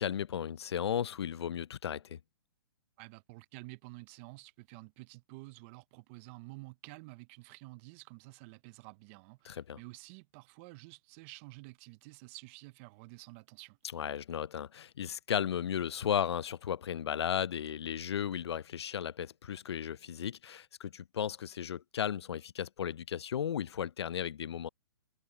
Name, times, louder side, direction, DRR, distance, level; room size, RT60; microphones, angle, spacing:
voice 1, 0.0-2.2 9.4-9.8 13.9-24.7, left 9 dB, 80° left, 0.5 m, -35 dB
voice 2, 3.0-13.8, right 24 dB, 30° right, 0.5 m, -50 dB
hypercardioid pair, 145°, 14 cm